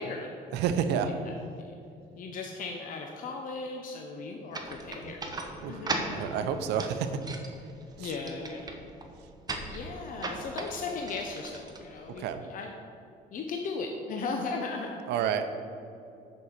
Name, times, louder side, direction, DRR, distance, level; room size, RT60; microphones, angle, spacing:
voice 1, 0.0-0.4 1.3-1.8 2.2-5.4 5.7-6.4 8.0-8.8 9.7-12.7 13.3-15.3, left 4 dB, 55° left, 2 dB, 0.8 m, -37 dB
voice 2, 0.5-1.1 5.0-5.1 5.6-5.8 6.1-7.6 8.0-8.1 12.1-12.4 15.1-15.5, right 7 dB, 85° right, 8 dB, 0.7 m, -30 dB
sound 1, 4.5-12.4, right 2 dB, 25° right, 0.9 m, -39 dB
6.7 x 5.6 x 6.5 m, 2.6 s
cardioid pair, 110°, 17 cm